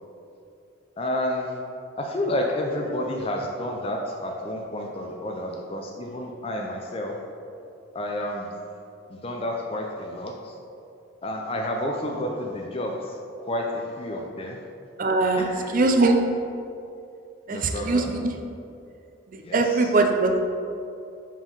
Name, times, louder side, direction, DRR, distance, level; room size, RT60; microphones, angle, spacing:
voice 1, 1.0-1.6 2.0-7.2 7.9-8.5 9.1-10.6 11.2-14.6 15.3-15.8 17.5-18.1 19.4-19.9, left 1 dB, 25° left, 0 dB, 0.4 m, -30 dB
voice 2, 15.0-15.5 15.7-16.2 17.5-18.3 19.3-20.4, right 3 dB, 40° right, 4 dB, 0.4 m, -21 dB
4.9 x 3.7 x 5.4 m, 2.6 s
head